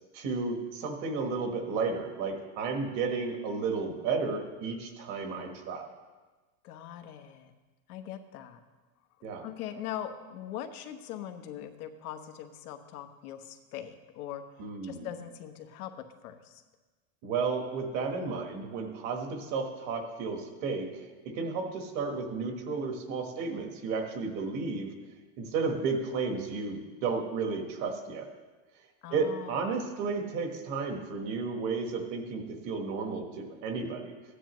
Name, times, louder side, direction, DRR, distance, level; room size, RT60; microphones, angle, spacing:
voice 1, 0.1-5.9 9.2-9.4 14.6-15.1 17.2-24.9 25.4-28.3 29.1-34.1, right 4 dB, 40° right, 4 dB, 1.4 m, -33 dB
voice 2, 6.6-7.5 7.9-8.6 9.4-14.4 14.8-15.9 16.2-16.6 29.0-29.9, left 10 dB, 85° left, 7 dB, 1.1 m, -41 dB
14.5 x 10.0 x 3.1 m, 1.3 s
supercardioid pair, 165°, 44 cm